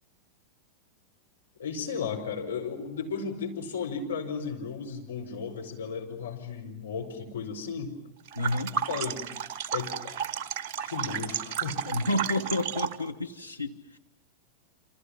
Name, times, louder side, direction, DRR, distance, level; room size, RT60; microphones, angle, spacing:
voice 1, 1.6-7.9 8.7-9.2 9.7-10.2 10.8-12.0, left 5 dB, 65° left, 1 dB, 5.0 m, -35 dB
voice 2, 8.3-8.8 11.9-14.0, left 1 dB, 90° left, 2 dB, 1.3 m, -30 dB
sound 1, 8.3-13.1, right 8 dB, 40° right, 1.3 m, -33 dB
29.5 x 26.5 x 7.3 m, 0.82 s
figure-of-eight pair, 90°, 0 cm